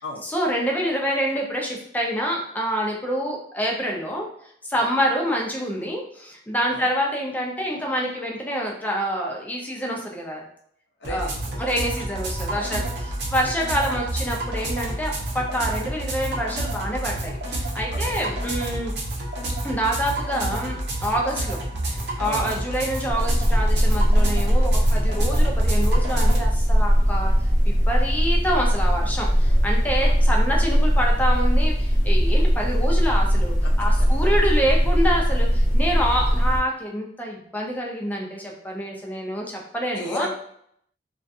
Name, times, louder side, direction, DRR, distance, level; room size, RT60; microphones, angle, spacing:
voice 1, 0.2-4.3 4.6-10.4 11.1-11.3 11.6-12.8 13.3-18.9 19.6-21.6 21.9-27.3 27.7-40.3, equal, 10° left, -1 dB, 0.5 m, -27 dB
voice 2, 11.0-11.6 12.5-13.0 17.9-18.4 22.2-22.5 30.0-30.2 33.6-33.7 34.0-34.3 39.9-40.3, left 1 dB, 70° left, 0 dB, 0.6 m, -36 dB
sound 1, 11.0-26.4, right 1 dB, 65° right, 0.7 m, -29 dB
sound 2, 23.1-36.6, equal, 45° left, 0.9 m, -20 dB
2.5 x 2.3 x 2.5 m, 0.68 s
head